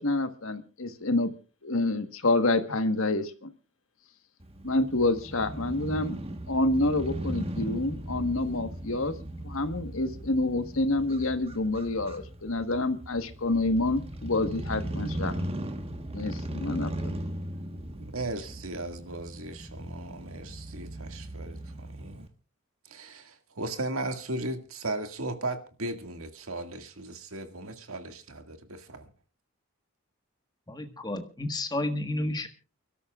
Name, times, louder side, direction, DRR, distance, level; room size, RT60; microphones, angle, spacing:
voice 1, 0.0-1.3 1.6-3.5 4.6-6.2 6.5-9.1 9.4-15.3 16.1-17.1, left 2 dB, 65° left, 1.4 m, -28 dB
Crow / Motorcycle, 4.4-22.3, right 1 dB, 25° right, 1.3 m, -38 dB
voice 2, 17.9-22.3 22.9-29.0, right 2 dB, 70° right, 1.9 m, -37 dB
voice 3, 30.7-32.5, left 1 dB, 20° left, 1.4 m, -31 dB
29.5 x 13.0 x 2.4 m
head